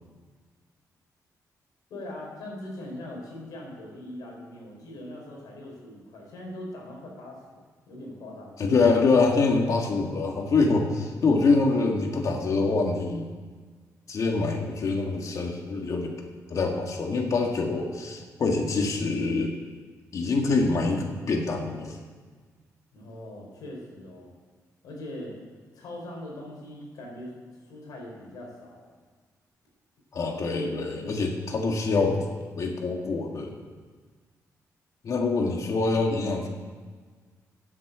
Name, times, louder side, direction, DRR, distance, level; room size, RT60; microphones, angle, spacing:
voice 1, 1.9-8.6 22.9-24.3 24.8-25.4 25.7-27.3 27.6-29.0, left 1 dB, 85° left, -1 dB, 4.3 m, -41 dB
voice 2, 8.6-13.3 14.1-16.1 16.5-19.6 20.1-22.0 30.1-32.2 32.6-33.5 35.0-36.5, left 3 dB, 55° left, 2 dB, 1.8 m, -25 dB
10.5 x 7.8 x 8.0 m, 1.5 s
cardioid pair, 100°, 6 cm